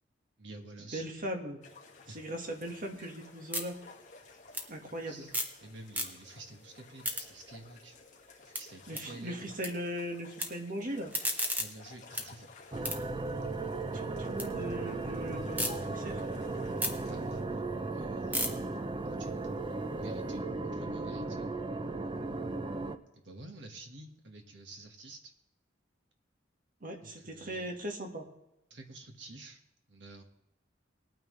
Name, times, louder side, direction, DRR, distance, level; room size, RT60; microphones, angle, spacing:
voice 1, 0.4-1.1 2.1-2.2 4.9-8.0 8.4-9.5 11.6-12.5 17.0-17.4 17.9-21.5 23.1-25.3 27.0-27.7 28.7-29.6 29.9-30.2, right 2 dB, 70° right, 4 dB, 1.6 m, -50 dB
voice 2, 0.9-1.6 2.1-3.8 4.7-5.3 8.9-11.1 13.9-16.2 26.8-28.3, equal, 50° right, 3 dB, 1.7 m, -39 dB
sound 1, 1.6-17.4, left 4 dB, 45° left, 2.1 m, -56 dB
sound 2, 2.6-5.6 5.9-6.5 6.8-9.7 10.0-10.5 10.9-14.5 14.9-15.7 16.2-20.3, equal, 10° right, 1.3 m, -38 dB
sound 3, 12.7-23.0, right 3 dB, 25° right, 0.5 m, -36 dB
20.0 x 9.2 x 3.3 m, 0.90 s
head